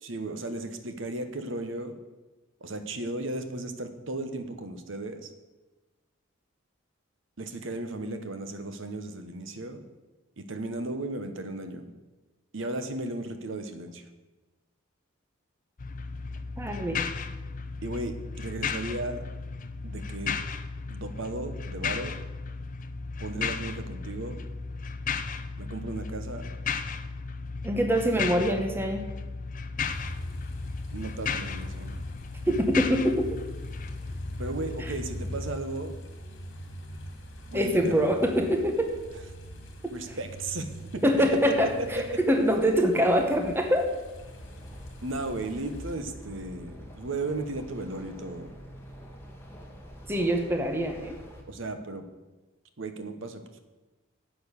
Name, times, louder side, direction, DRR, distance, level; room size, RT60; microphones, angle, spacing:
voice 1, 0.0-2.0 2.6-5.3 7.4-9.8 10.4-11.9 12.5-14.0 17.8-19.2 19.8-20.4 20.9-22.1 23.2-24.4 25.6-26.5 28.1-28.2 30.9-32.0 34.4-35.9 37.5-38.1 39.9-42.2 45.0-48.5 51.5-52.0 52.8-53.6, right 2 dB, 65° right, 9 dB, 1.2 m, -35 dB
sound 1, 15.8-35.6, left 5 dB, 40° left, 0.6 m, -35 dB
voice 2, 16.6-17.1 27.6-29.0 32.5-33.3 34.8-34.9 37.5-38.9 41.0-43.9 50.1-51.2, equal, 10° right, 4 dB, 1.0 m, -24 dB
sound 2, 29.8-46.0, equal, 60° left, 2.4 m, -42 dB
sound 3, 44.2-51.4, equal, 10° left, 1.9 m, -46 dB
12.0 x 8.0 x 6.6 m, 1.2 s
head